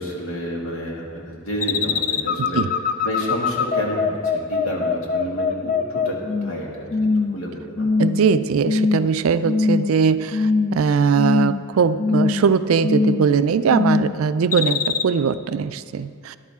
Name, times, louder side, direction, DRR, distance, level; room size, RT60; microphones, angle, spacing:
voice 1, 0.0-2.6 3.0-6.2 6.4-8.0, equal, 75° left, -2 dB, 2.1 m, -30 dB
sound 1, 1.6-6.6 6.9-7.4 7.8-8.3 8.6-9.1 9.4-10.0 10.3-10.8 11.1-11.7 12.0-12.5 12.8-13.3 13.7-14.1 14.5-15.0, left 4 dB, 40° left, 0.4 m, -21 dB
voice 2, 8.0-16.4, right 6 dB, 75° right, 13 dB, 0.4 m, -20 dB
13.0 x 11.0 x 3.6 m, 2.3 s
head